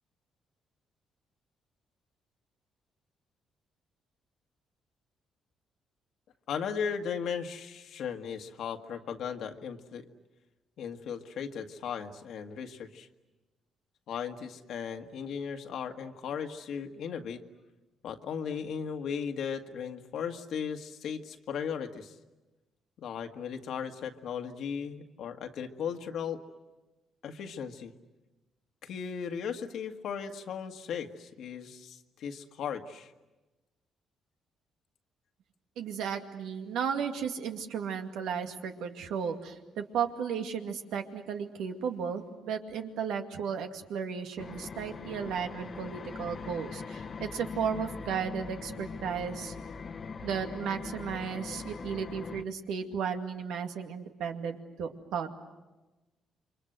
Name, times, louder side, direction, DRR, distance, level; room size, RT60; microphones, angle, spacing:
voice 1, 6.5-10.1 10.8-13.1 14.1-17.4 18.0-22.2 23.0-26.4 27.2-27.9 28.8-33.1, left 7 dB, 75° left, 5 dB, 1.8 m, -37 dB
voice 2, 35.8-49.5 50.2-55.3, right 7 dB, 85° right, 4 dB, 2.3 m, -34 dB
sound 1, 44.4-52.4, left 5 dB, 45° left, 1.2 m, -41 dB
28.5 x 24.0 x 8.0 m, 1.1 s
cardioid pair, 90°, 0 cm